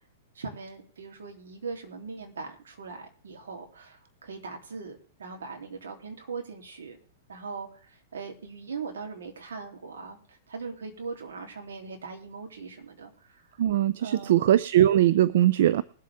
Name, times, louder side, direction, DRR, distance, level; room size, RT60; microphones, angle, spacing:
voice 1, 0.4-7.0 7.3-13.5 14.0-14.4, right 4 dB, 85° right, 2 dB, 3.4 m, -40 dB
voice 2, 13.6-15.8, right 12 dB, 65° right, 16 dB, 0.5 m, -21 dB
20.5 x 7.6 x 3.7 m, 0.42 s
hypercardioid pair, 125°, 0 cm